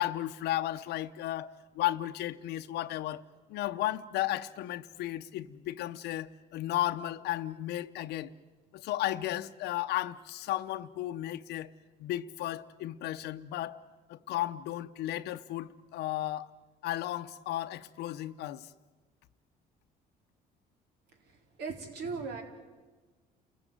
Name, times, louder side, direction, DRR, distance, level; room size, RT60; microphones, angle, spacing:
voice 1, 0.0-3.2 3.5-8.3 8.7-11.7 12.0-13.8 14.1-16.5 16.8-18.7, left 14 dB, 80° left, 0.8 m, -34 dB
voice 2, 21.6-22.4, right 4 dB, 80° right, 4.1 m, -37 dB
29.5 x 15.5 x 9.2 m
cardioid pair, 110°, 17 cm